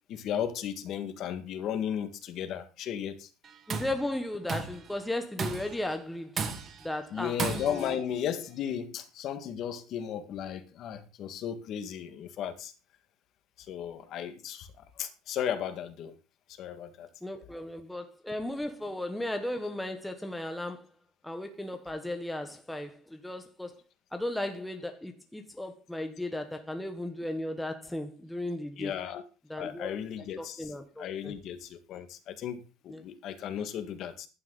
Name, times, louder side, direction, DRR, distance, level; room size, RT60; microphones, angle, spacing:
voice 1, 0.1-3.3 7.1-12.7 13.6-14.7 15.0-16.1 16.5-17.1 28.8-29.2 29.6-30.7 31.0-34.3, left 9 dB, 40° left, 1.9 m, -35 dB
Tools, 3.4-4.0 4.5-4.9 5.4-5.8 6.4-6.9 7.4-8.0, right 5 dB, 25° right, 1.7 m, -34 dB
voice 2, 3.7-6.3 6.8-7.4 7.6-8.0 17.2-20.9 21.2-23.7 24.1-28.9 29.5-29.9 30.4-31.3 32.9-33.0, left 1 dB, 5° left, 1.0 m, -35 dB
15.5 x 11.0 x 4.0 m
cardioid pair, 175°, 0 cm